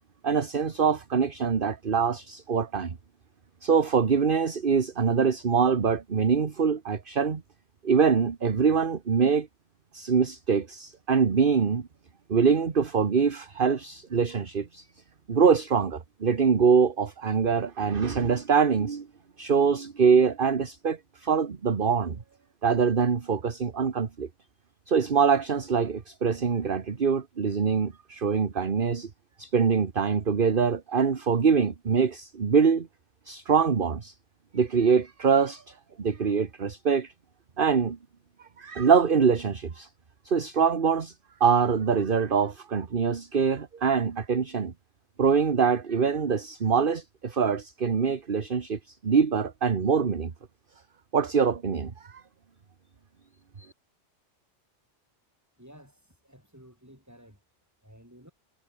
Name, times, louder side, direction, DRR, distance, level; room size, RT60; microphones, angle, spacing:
voice 1, 0.2-3.0 3.6-7.4 7.8-9.5 9.9-11.9 12.3-14.9 15.3-19.1 19.4-22.2 22.6-24.3 24.9-29.1 29.4-32.9 33.3-34.1 34.5-37.1 37.6-38.0 38.6-39.9 40.2-41.1 41.4-44.7 45.2-50.3 51.1-52.2 53.6-53.7, right 6 dB, 45° right, 1.4 m, -24 dB
voice 2, 55.6-57.4 57.8-58.3, equal, 15° right, 7.8 m, -53 dB
omnidirectional pair, 1.2 m